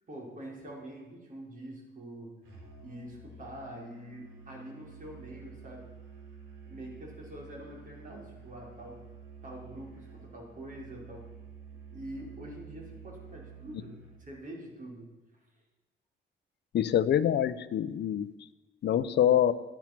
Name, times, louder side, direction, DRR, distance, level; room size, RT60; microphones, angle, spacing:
voice 1, 0.1-2.6 2.8-5.9 6.7-9.0 9.4-11.3 11.9-15.1, right 1 dB, 40° right, -2 dB, 5.2 m, -45 dB
Musical instrument, 2.4-14.3, right 5 dB, 90° right, 4.8 m, -50 dB
voice 2, 16.7-18.3 18.8-19.5, left 10 dB, 60° left, 13 dB, 0.8 m, -25 dB
13.0 x 10.0 x 6.0 m, 1.1 s
cardioid pair, 90°, 20 cm